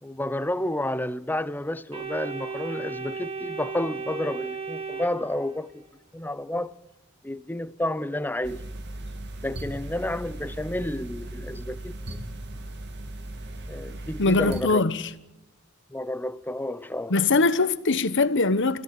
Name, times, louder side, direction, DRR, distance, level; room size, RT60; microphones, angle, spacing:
voice 1, 0.0-5.8 6.1-6.7 7.2-8.6 9.4-12.2 13.7-14.8 15.9-17.1, left 1 dB, 10° left, 0.8 m, -30 dB
Organ, 1.9-5.8, right 5 dB, 25° right, 2.0 m, -35 dB
sound 1, 8.4-14.6, right 1 dB, 55° right, 2.1 m, -37 dB
voice 2, 14.2-15.1 17.1-18.8, left 3 dB, 60° left, 1.2 m, -22 dB
27.5 x 16.0 x 8.7 m
head